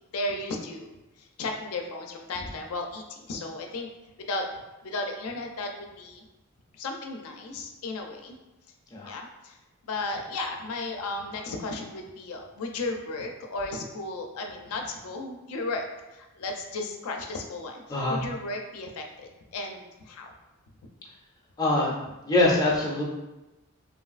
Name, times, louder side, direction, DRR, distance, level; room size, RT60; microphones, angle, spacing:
voice 1, 0.1-0.9 1.2-3.9 4.2-4.4 4.8-6.2 6.7-8.4 9.1-9.6 9.8-20.3, left 2 dB, 85° left, 2 dB, 0.4 m, -34 dB
voice 2, 17.9-18.2 21.6-22.0 22.2-23.0, left 2 dB, 15° left, -4 dB, 0.4 m, -23 dB
3.1 x 2.5 x 2.4 m, 1.0 s
head